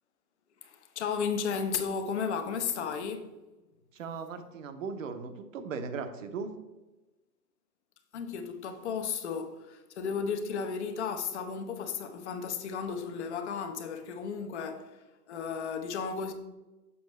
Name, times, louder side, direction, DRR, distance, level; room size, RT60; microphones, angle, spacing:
voice 1, 0.6-3.3 8.1-15.0 15.3-16.3, left 6 dB, 45° left, 0.9 m, -34 dB
voice 2, 3.9-6.5, right 5 dB, 50° right, 0.9 m, -38 dB
7.0 x 5.9 x 3.2 m
hypercardioid pair, 145°, 49 cm